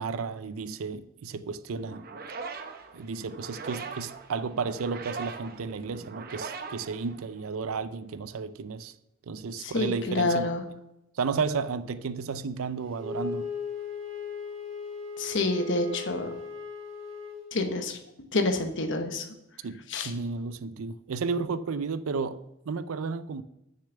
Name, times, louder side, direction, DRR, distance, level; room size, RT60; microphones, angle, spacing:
voice 1, 0.0-2.0 2.9-8.9 9.3-10.5 11.2-13.5 19.6-23.4, right 5 dB, 75° right, 0.5 m, -33 dB
sound 1, 1.8-7.7, right 4 dB, 45° right, 0.8 m, -41 dB
voice 2, 9.6-10.6 15.2-16.3 17.5-18.0 18.3-19.2 19.9-20.1, left 2 dB, 55° left, 1.0 m, -28 dB
Wind instrument woodwind instrument, 13.0-17.5, left 5 dB, 25° right, 3.0 m, -37 dB
6.8 x 6.6 x 6.7 m
head